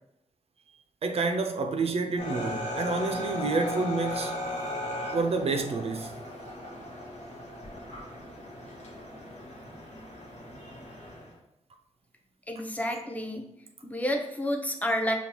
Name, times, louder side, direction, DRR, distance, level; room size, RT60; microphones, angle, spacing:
voice 1, 1.0-4.4 5.1-6.2, right 3 dB, 55° right, 0.4 m, -29 dB
sound 1, 2.2-11.3, left 2 dB, 70° left, 1.0 m, -37 dB
voice 2, 12.5-13.4 13.8-15.1, left 1 dB, 10° left, 0.6 m, -30 dB
5.2 x 2.3 x 2.9 m
wide cardioid pair, 100°, 12 cm